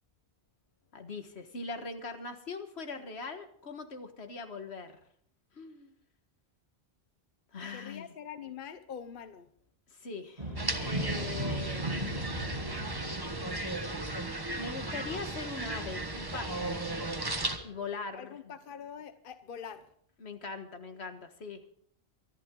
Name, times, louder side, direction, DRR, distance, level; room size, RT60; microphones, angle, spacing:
voice 1, 0.9-5.0 5.5-5.9 7.5-8.1 9.9-12.6 14.5-16.9 17.6-18.4 20.2-21.6, left 4 dB, 85° left, 7 dB, 1.8 m, -41 dB
voice 2, 7.7-9.5 18.1-19.9, left 7 dB, 60° left, 10 dB, 1.0 m, -44 dB
sound 1, 10.4-18.0, right 1 dB, 35° right, 2.7 m, -39 dB
sound 2, 10.6-17.6, right 2 dB, 20° right, 1.3 m, -36 dB
24.5 x 11.5 x 3.8 m, 0.63 s
omnidirectional pair, 1.1 m